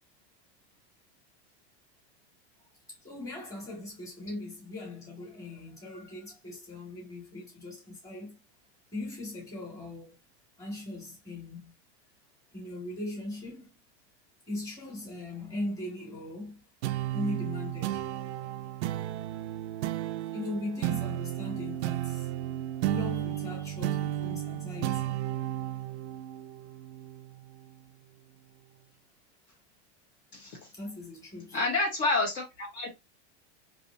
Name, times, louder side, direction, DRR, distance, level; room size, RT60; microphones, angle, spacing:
voice 1, 3.0-8.4 8.9-10.2 10.6-11.7 12.5-13.8 14.5-16.6 17.1-18.0 20.3-22.3 22.9-25.4 30.7-31.6, left 2 dB, 10° left, 1.7 m, -39 dB
sound 1, 16.8-27.7, right 13 dB, 75° right, 0.5 m, -33 dB
voice 2, 31.5-32.9, left 3 dB, 40° left, 1.2 m, -28 dB
4.7 x 2.9 x 2.6 m
supercardioid pair, 170°, 35 cm